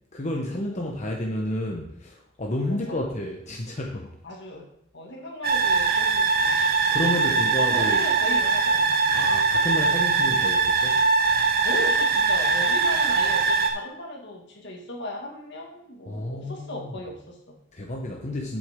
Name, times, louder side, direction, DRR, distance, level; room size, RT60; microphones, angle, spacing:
voice 1, 0.1-4.2 6.6-8.1 9.1-11.1 16.1-16.9 17.7-18.6, left 1 dB, 40° left, 0 dB, 1.0 m, -31 dB
voice 2, 2.7-3.0 4.2-6.6 7.2-7.4 7.7-9.3 11.6-17.6, left 1 dB, 65° left, 0 dB, 2.0 m, -37 dB
sound 1, 5.4-13.7, right 4 dB, 55° right, 1.0 m, -22 dB
8.9 x 8.2 x 3.7 m, 0.77 s
head